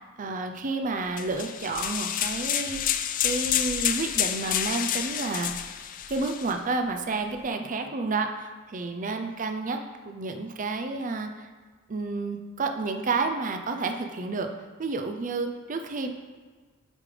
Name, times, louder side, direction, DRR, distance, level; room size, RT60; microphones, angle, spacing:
voice 1, 0.2-2.8 3.2-5.5 6.1-9.8 10.0-11.5 11.9-14.5 14.8-16.1, right 3 dB, 40° right, 5 dB, 0.5 m, -30 dB
sound 1, 1.2-6.6, left 10 dB, 40° left, 0.3 m, -29 dB
8.4 x 5.4 x 3.3 m, 1.4 s
head